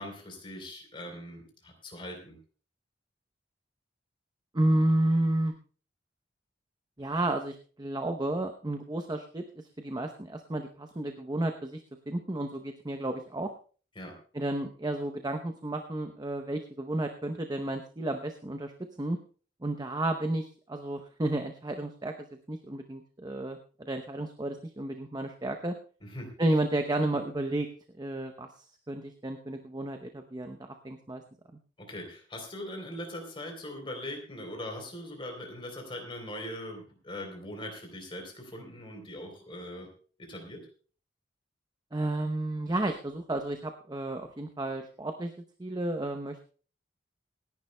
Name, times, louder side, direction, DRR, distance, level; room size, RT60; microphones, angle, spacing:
voice 1, 0.0-2.4 14.0-14.1 26.0-26.3 31.9-39.9 40.2-40.6, left 1 dB, 30° left, 3 dB, 3.5 m, -41 dB
voice 2, 4.5-5.5 7.0-11.8 12.1-13.5 14.3-18.7 19.0-19.2 19.6-25.7 26.4-27.7 28.0-30.6 30.8-31.2 41.9-45.3 45.6-46.5, right 1 dB, 20° right, 6 dB, 0.7 m, -32 dB
27.0 x 10.5 x 2.2 m, 0.41 s
head